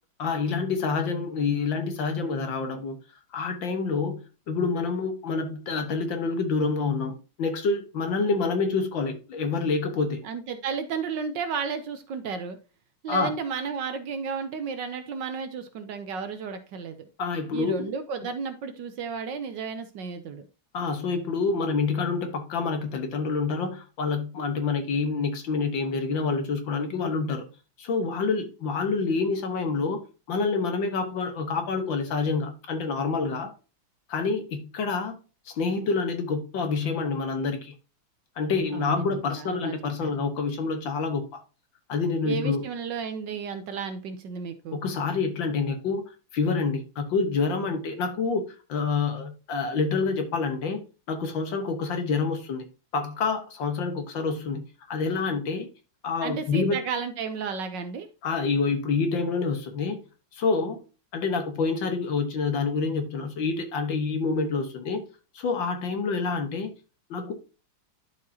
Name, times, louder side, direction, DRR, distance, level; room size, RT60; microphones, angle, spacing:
voice 1, 0.2-3.0 3.3-10.2 13.1-13.3 17.2-17.9 20.7-27.5 27.8-30.0 30.3-33.5 34.1-35.1 35.5-37.7 38.4-41.3 41.9-42.6 44.7-46.1 46.3-48.4 48.7-50.8 51.1-52.7 52.9-55.7 56.0-56.8 58.2-60.0 60.3-60.8 61.1-65.0 65.4-66.7 67.1-67.3, left 4 dB, 65° left, 1.9 m, -27 dB
voice 2, 10.2-12.6 13.0-17.1 17.5-20.5 38.7-40.1 42.2-44.8 56.2-58.1, right 5 dB, 65° right, 1.3 m, -33 dB
11.5 x 4.7 x 2.8 m
omnidirectional pair, 2.3 m